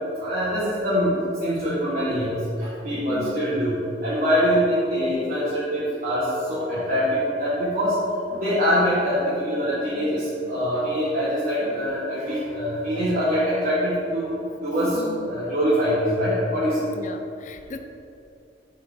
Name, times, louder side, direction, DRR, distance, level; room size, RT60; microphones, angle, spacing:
voice 1, 0.2-3.8 4.0-8.0 8.3-14.3 14.6-16.9, equal, 50° right, -10 dB, 1.5 m, -24 dB
voice 2, 3.1-3.4 14.9-15.3 17.0-17.8, left 3 dB, 45° left, 6 dB, 0.4 m, -37 dB
10.0 x 4.7 x 3.6 m, 2.7 s
head